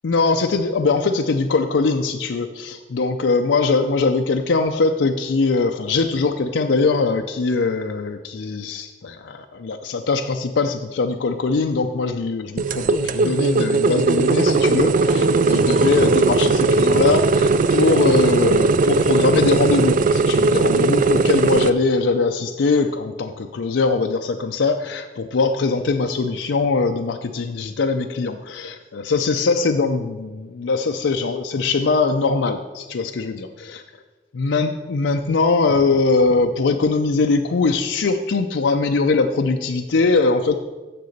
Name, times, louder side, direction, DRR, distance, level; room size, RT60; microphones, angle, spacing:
voice 1, 0.0-33.8 34.3-40.6, left 4 dB, 75° left, 4 dB, 0.5 m, -21 dB
sound 1, 12.6-21.7, right 3 dB, 45° right, 0.4 m, -18 dB
7.6 x 6.7 x 6.5 m, 1.3 s
head